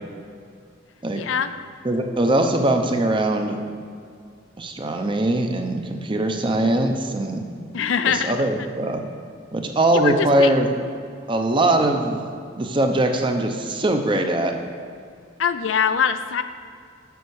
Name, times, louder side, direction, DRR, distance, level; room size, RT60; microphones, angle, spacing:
voice 1, 1.2-1.5 7.7-8.3 9.9-10.5 15.4-16.4, left 7 dB, 70° left, 10 dB, 0.4 m, -22 dB
voice 2, 1.8-3.6 4.6-7.4 8.0-9.0 9.5-10.9 11.3-12.3 12.6-14.5, right 1 dB, 25° right, 4 dB, 0.6 m, -21 dB
7.0 x 5.7 x 6.4 m, 2.3 s
head